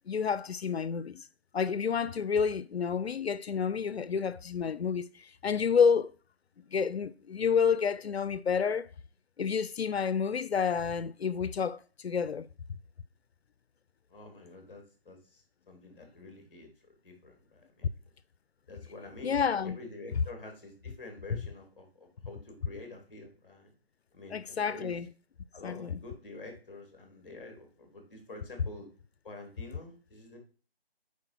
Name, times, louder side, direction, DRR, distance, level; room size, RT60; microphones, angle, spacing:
voice 1, 0.1-1.3 1.5-6.1 6.7-8.9 9.4-12.5 19.2-19.8 21.3-21.4 24.3-25.1 25.6-25.9, left 6 dB, 85° left, 0.5 m, -29 dB
voice 2, 14.1-16.7 17.0-17.9 18.7-19.3 19.6-23.7 24.1-24.9 25.5-28.9 29.2-30.4, left 2 dB, 10° left, 1.7 m, -48 dB
8.2 x 4.8 x 2.6 m
figure-of-eight pair, 160°, 31 cm